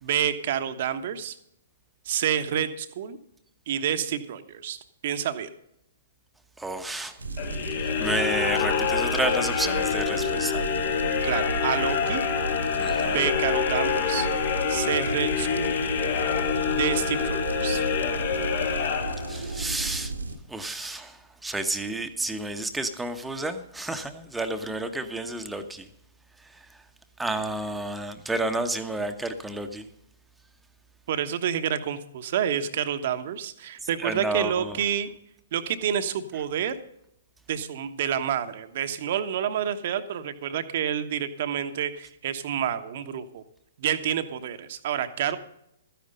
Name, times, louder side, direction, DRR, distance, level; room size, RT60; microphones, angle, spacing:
voice 1, 0.0-1.4 2.0-3.2 3.7-4.8 5.0-5.5 11.2-12.2 13.0-14.3 14.7-15.7 16.7-17.8 31.1-35.1 35.5-36.8 37.5-43.4 43.8-45.4, right 9 dB, 50° right, 10 dB, 1.1 m, -28 dB
voice 2, 6.6-7.2 7.8-10.7 12.8-13.3 19.3-20.1 20.5-25.9 26.4-26.8 27.2-29.9 34.0-34.8, right 2 dB, 5° right, 7 dB, 1.1 m, -31 dB
sound 1, 7.2-20.4, right 3 dB, 80° right, 1.6 m, -34 dB
sound 2, 7.3-19.6, left 7 dB, 50° left, 1.6 m, -27 dB
13.5 x 10.5 x 5.4 m, 0.77 s
figure-of-eight pair, 115°, 0 cm